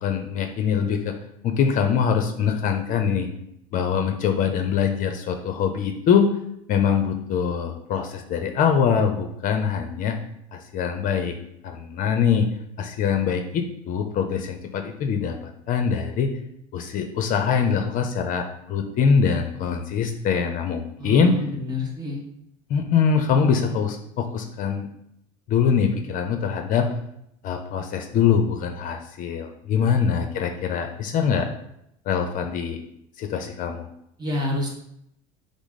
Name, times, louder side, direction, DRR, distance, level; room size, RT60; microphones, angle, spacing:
voice 1, 0.0-1.2 1.4-3.3 3.7-6.3 6.7-10.2 10.5-11.4 11.6-12.5 12.8-16.3 16.7-21.4 22.7-24.9 25.5-26.9 27.4-31.5 32.1-32.8 33.2-33.9, left 6 dB, 45° left, 5 dB, 0.6 m, -23 dB
voice 2, 21.0-22.2 29.8-30.1 34.2-34.7, left 2 dB, 20° right, 0 dB, 1.4 m, -29 dB
5.8 x 2.0 x 4.0 m, 0.76 s
supercardioid pair, 105°, 18 cm